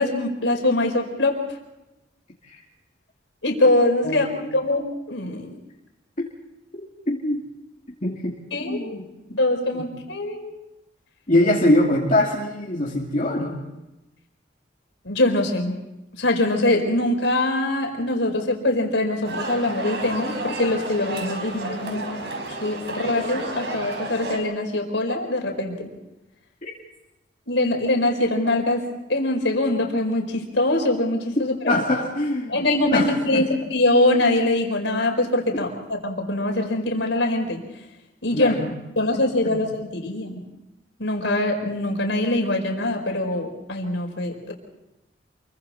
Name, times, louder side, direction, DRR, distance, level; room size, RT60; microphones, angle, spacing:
voice 1, 0.0-1.4 3.4-5.5 8.5-9.0 9.4-10.5 15.0-15.7 16.2-22.1 22.6-25.9 27.5-31.8 32.5-37.6 38.2-38.6 39.0-40.4 41.0-44.5, left 1 dB, 75° left, 3 dB, 4.7 m, -23 dB
voice 2, 4.0-4.5 6.2-6.3 6.7-7.4 8.0-8.4 8.6-9.0 9.3-9.4 9.7-9.8 11.3-13.6 26.6-26.7 31.6-32.6 32.9-33.5 35.5-35.7 38.3-38.7 39.4-39.6, left 1 dB, 40° left, -3 dB, 2.6 m, -23 dB
sound 1, 19.2-24.4, right 2 dB, 65° right, 4.8 m, -31 dB
28.5 x 23.5 x 4.3 m, 0.98 s
head